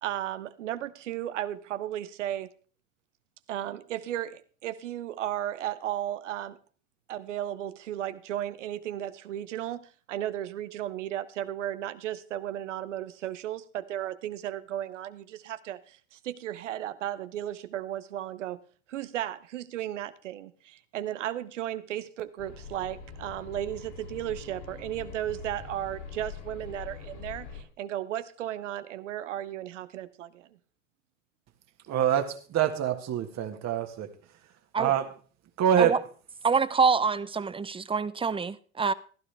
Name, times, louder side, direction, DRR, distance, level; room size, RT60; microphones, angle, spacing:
voice 1, 0.0-2.5 3.5-6.6 7.1-18.6 18.9-30.5, right 12 dB, 90° right, 0.8 m, -35 dB
sound 1, 22.4-27.6, left 6 dB, 70° left, 6.2 m, -43 dB
voice 2, 31.9-34.1 34.8-35.0 35.6-35.9, right 9 dB, 50° right, 1.7 m, -25 dB
voice 3, 36.4-38.9, right 5 dB, 15° right, 0.6 m, -26 dB
15.0 x 12.0 x 3.4 m
hypercardioid pair, 80°, 36 cm